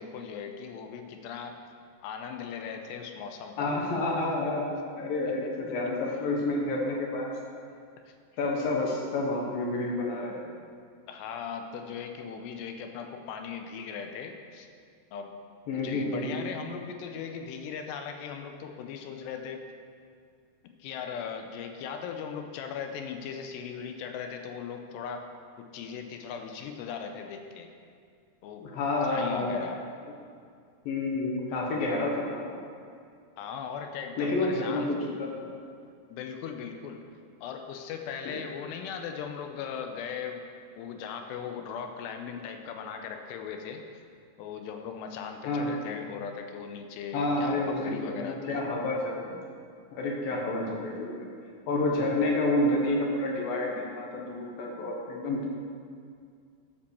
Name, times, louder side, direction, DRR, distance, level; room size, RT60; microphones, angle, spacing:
voice 1, 0.0-1.6 2.0-3.8 5.1-5.7 11.1-14.7 15.1-15.4 15.7-19.7 20.6-25.3 25.6-27.7 28.4-28.7 29.0-29.8 33.4-34.9 36.1-37.1 37.4-40.4 40.8-43.8 44.4-48.7, left 7 dB, 85° left, 5 dB, 2.8 m, -38 dB
voice 2, 3.6-7.3 8.4-10.4 15.7-16.3 28.6-29.5 30.9-32.6 34.2-35.3 45.5-45.8 47.1-49.4 49.9-51.3 51.7-55.5, left 2 dB, 65° left, -2 dB, 2.7 m, -29 dB
12.0 x 5.3 x 6.9 m, 2.3 s
omnidirectional pair, 5.0 m